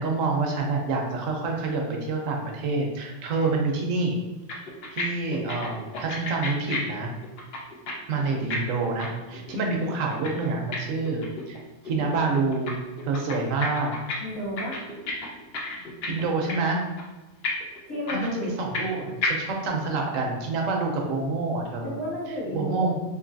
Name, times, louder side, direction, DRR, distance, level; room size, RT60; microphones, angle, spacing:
voice 1, 0.0-4.2 4.9-7.1 8.1-11.6 11.9-12.7 13.0-13.9 16.1-16.8 18.1-22.0 22.5-23.0, right 3 dB, 75° right, 1 dB, 1.0 m, -27 dB
sound 1, 4.2-4.3 4.5-5.0 5.3-7.9 8.2-11.6 11.9-12.7 13.0-14.2 14.4-16.2 16.5-16.7 17.0-17.1 17.4-18.9 19.2-19.3, left 3 dB, 60° left, 0.8 m, -32 dB
voice 2, 14.2-14.8 17.9-18.5 21.8-23.0, equal, 85° left, -8 dB, 1.8 m, -32 dB
3.7 x 2.6 x 2.6 m, 1.1 s
omnidirectional pair, 1.4 m